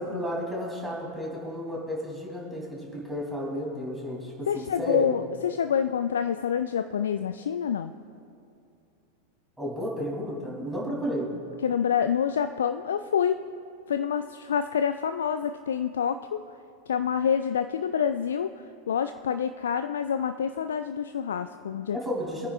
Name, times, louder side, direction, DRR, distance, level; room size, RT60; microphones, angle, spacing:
voice 1, 0.0-5.1 9.6-11.3 21.9-22.5, equal, 5° right, -4 dB, 3.1 m, -32 dB
voice 2, 4.5-7.9 11.6-13.4 13.9-16.4 16.9-22.0, left 8 dB, 65° left, 10 dB, 0.3 m, -27 dB
25.0 x 9.6 x 2.5 m, 2.6 s
figure-of-eight pair, 90°, 0 cm